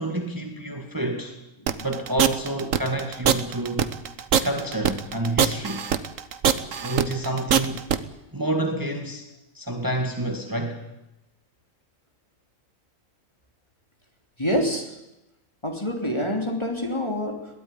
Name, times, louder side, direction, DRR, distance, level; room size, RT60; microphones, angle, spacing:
voice 1, 0.0-1.3 1.8-3.9 4.4-5.8 6.8-7.8 8.3-9.3 9.5-10.8, right 1 dB, 15° right, 3 dB, 2.1 m, -28 dB
sound 1, 1.7-8.0, right 8 dB, 75° right, 1.4 m, -22 dB
voice 2, 14.4-14.9 15.6-17.6, equal, 20° left, 3 dB, 3.2 m, -27 dB
22.0 x 16.0 x 10.0 m, 0.92 s
omnidirectional pair, 1.4 m